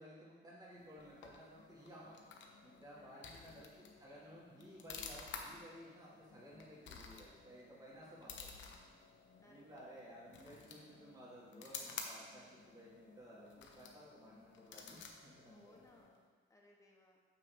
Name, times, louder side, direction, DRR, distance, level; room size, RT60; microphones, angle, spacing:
voice 1, 0.0-8.6 9.5-15.8, equal, 20° right, -7 dB, 2.1 m, -56 dB
sound 1, 0.7-16.3, left 5 dB, 70° left, 1.0 m, -53 dB
voice 2, 2.9-3.7 9.4-9.8 15.4-17.2, left 1 dB, 15° left, -2 dB, 1.6 m, -66 dB
7.2 x 6.1 x 4.6 m, 1.5 s
cardioid pair, 90°, 20 cm